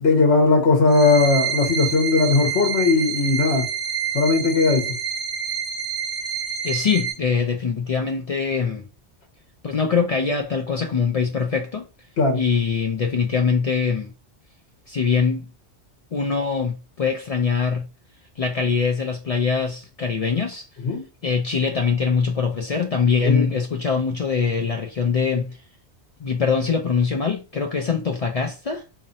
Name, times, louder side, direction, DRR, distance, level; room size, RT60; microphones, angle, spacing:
voice 1, 0.0-3.7 4.1-5.0 12.2-12.4 20.8-21.0 23.2-23.5, left 3 dB, 70° left, 1.3 m, -18 dB
sound 1, 0.9-7.1, right 7 dB, 20° right, 1.5 m, -28 dB
voice 2, 6.6-8.8 9.6-11.9 12.3-14.1 14.9-15.5 16.1-17.9 18.4-20.7 21.2-25.6 26.2-28.8, left 5 dB, 55° left, 0.4 m, -23 dB
4.0 x 2.9 x 2.6 m
omnidirectional pair, 1.2 m